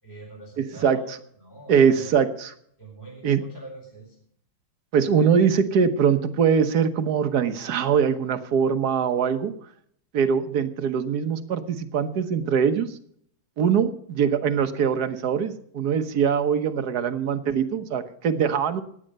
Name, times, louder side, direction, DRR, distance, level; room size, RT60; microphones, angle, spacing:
voice 1, 0.0-2.2 2.8-4.2, right 2 dB, 10° left, -1 dB, 4.7 m, -43 dB
voice 2, 0.6-1.0 1.7-2.5 3.2-3.4 4.9-9.5 10.1-13.0 13.6-18.8, right 7 dB, 55° right, 9 dB, 1.3 m, -22 dB
16.5 x 10.0 x 5.4 m, 0.65 s
omnidirectional pair, 2.4 m